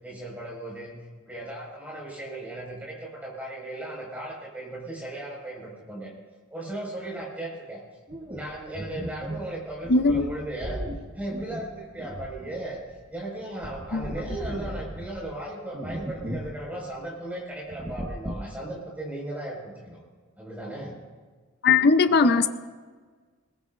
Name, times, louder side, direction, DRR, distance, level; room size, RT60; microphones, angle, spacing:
voice 1, 0.0-0.9 1.2-6.1 6.5-7.8 8.3-10.8 11.2-12.8 13.1-20.0 20.4-20.9 22.2-22.4, right 1 dB, 5° right, -3 dB, 5.2 m, -36 dB
sound 1, 8.1-13.1 13.4-15.3 15.7-16.6 16.9-17.0 17.7-18.6, right 1 dB, 20° right, 1.1 m, -36 dB
voice 2, 9.9-10.3 13.9-14.1 21.6-22.5, left 4 dB, 45° left, 10 dB, 0.6 m, -19 dB
20.5 x 20.0 x 2.5 m, 1.4 s
head